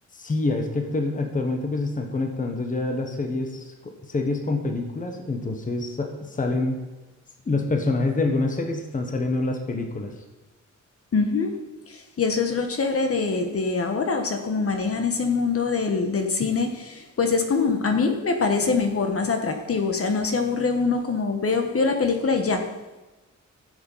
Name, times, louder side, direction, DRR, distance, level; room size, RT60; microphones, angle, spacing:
voice 1, 0.1-6.8 7.5-10.1, left 2 dB, 25° left, 4 dB, 1.2 m, -26 dB
voice 2, 11.1-11.5 11.9-22.7, left 4 dB, 50° left, 5 dB, 1.4 m, -24 dB
14.0 x 7.8 x 5.6 m, 1.1 s
wide cardioid pair, 170°, 30 cm